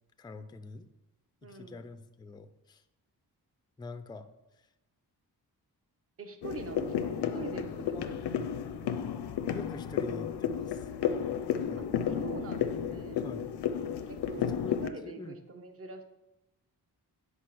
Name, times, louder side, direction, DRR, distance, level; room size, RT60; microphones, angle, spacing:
voice 1, 0.2-0.9 1.4-2.8 3.8-4.3 4.6-4.7 7.9-8.1 9.5-10.9 11.7-11.9 13.2-13.5 14.4-15.4, left 3 dB, 10° left, 9 dB, 0.4 m, -45 dB
voice 2, 1.4-1.9 6.2-8.2 11.8-13.2 14.1-14.5 14.8-16.0, right 4 dB, 35° right, 6 dB, 1.0 m, -43 dB
sound 1, 6.4-14.9, left 8 dB, 90° left, 0.6 m, -32 dB
8.2 x 5.1 x 6.0 m, 0.99 s
wide cardioid pair, 155°, 39 cm